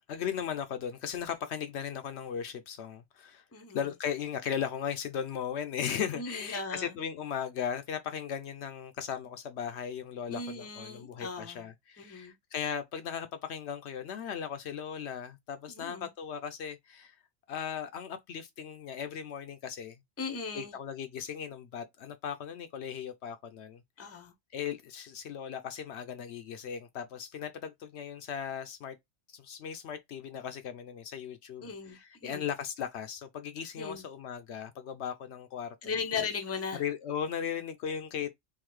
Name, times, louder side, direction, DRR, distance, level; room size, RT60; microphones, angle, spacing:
voice 1, 0.1-3.4 3.7-17.1 17.5-20.0 20.5-23.8 24.5-29.0 29.3-36.0 36.7-38.3, left 8 dB, 70° left, 0.8 m, -37 dB
voice 2, 6.1-6.9 10.3-11.7 12.0-12.3 15.7-16.1 20.2-20.7 24.0-24.3 31.6-32.5 33.8-34.0 35.8-36.8, left 5 dB, 15° left, 0.6 m, -37 dB
3.8 x 2.8 x 3.0 m
omnidirectional pair, 1.2 m